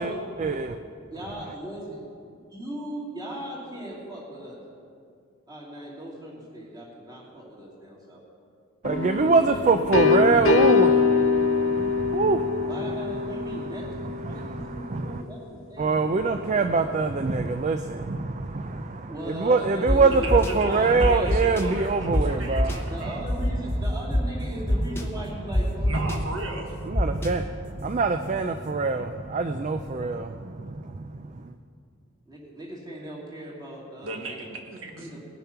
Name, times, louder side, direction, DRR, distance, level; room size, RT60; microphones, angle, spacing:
voice 1, 0.4-0.7 8.8-12.7 14.2-15.2 15.8-22.8 26.0-26.1 26.9-31.1, right 4 dB, 35° right, 8 dB, 0.4 m, -24 dB
voice 2, 1.1-2.0 2.5-4.6 5.5-8.2 8.9-9.6 12.6-17.1 19.0-21.8 22.9-26.0 32.3-34.4 35.0-35.2, right 1 dB, 20° right, -5 dB, 2.9 m, -38 dB
sound 1, 8.8-14.5, left 5 dB, 65° left, 1.1 m, -23 dB
sound 2, 19.9-20.0 20.3-20.5 21.0-21.6 22.1-22.2 22.5-22.8 23.3-24.2 24.7-25.0 25.5-26.2 26.9-27.3, left 1 dB, 10° left, 0.8 m, -23 dB
voice 3, 20.1-23.2 25.8-26.8 34.0-35.2, right 2 dB, 65° right, 1 dB, 1.4 m, -37 dB
19.0 x 7.0 x 5.8 m, 2.3 s
head